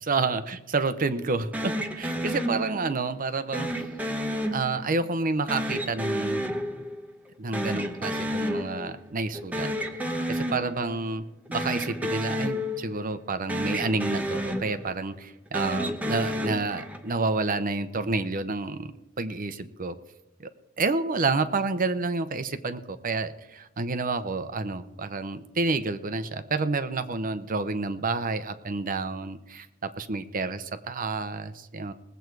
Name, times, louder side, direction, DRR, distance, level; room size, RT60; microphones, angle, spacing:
voice 1, 0.0-3.7 4.5-6.4 7.4-9.7 10.3-11.2 11.5-18.9 19.2-20.0 20.4-20.5 20.8-31.9, right 3 dB, 40° right, 11 dB, 0.7 m, -29 dB
sound 1, 1.5-3.1 3.5-5.1 5.5-7.3 7.5-9.1 9.3-11.1 11.5-13.2 13.5-15.1 15.5-17.2, equal, 5° right, 1.1 m, -31 dB
20.0 x 8.0 x 4.7 m, 1.0 s
head